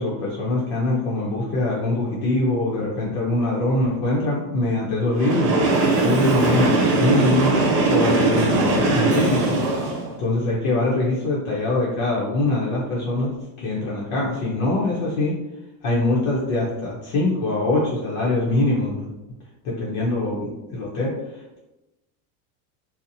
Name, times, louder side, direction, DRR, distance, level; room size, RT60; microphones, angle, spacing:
voice 1, 0.0-5.6 6.0-9.6 10.2-15.4 15.8-19.1 19.6-21.6, left 2 dB, 50° left, -5 dB, 0.6 m, -23 dB
Train, 5.1-10.1, right 2 dB, 45° right, 0.7 m, -20 dB
2.7 x 2.0 x 2.6 m, 0.99 s
supercardioid pair, 170°, 46 cm